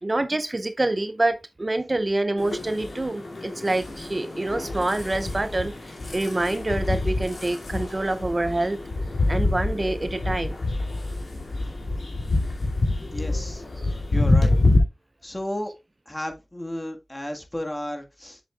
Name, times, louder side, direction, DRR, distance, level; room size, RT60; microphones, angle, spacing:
voice 1, 0.0-8.8 9.3-10.6 13.8-13.9, right 2 dB, 35° right, 0.5 m, -26 dB
sound 1, 2.4-14.8, left 2 dB, 80° left, 2.6 m, -26 dB
voice 2, 13.1-13.6 13.9-14.6 15.2-15.7 16.0-18.4, left 1 dB, 20° left, 1.7 m, -33 dB
7.4 x 7.0 x 2.4 m
wide cardioid pair, 60°, 0 cm